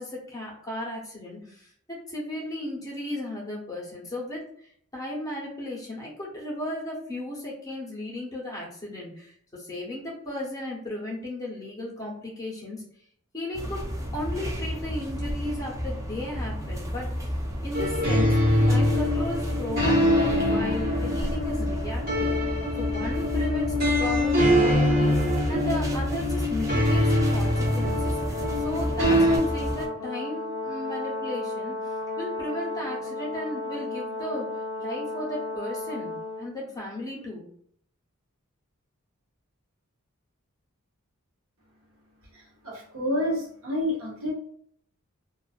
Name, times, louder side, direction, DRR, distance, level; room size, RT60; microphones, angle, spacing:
voice 1, 0.0-12.8 13.3-13.9 14.1-17.3 17.6-18.4 18.7-34.5 34.8-37.5, left 1 dB, 15° left, -4 dB, 0.8 m, -35 dB
sound 1, 13.5-29.9, equal, 15° right, 0.4 m, -32 dB
sound 2, 17.7-29.4, left 1 dB, 45° right, 1.1 m, -24 dB
Brass instrument, 27.5-36.5, left 2 dB, 80° left, 0.5 m, -33 dB
voice 2, 42.6-44.3, left 1 dB, 80° right, -3 dB, 1.0 m, -28 dB
2.4 x 2.3 x 2.4 m, 0.64 s
head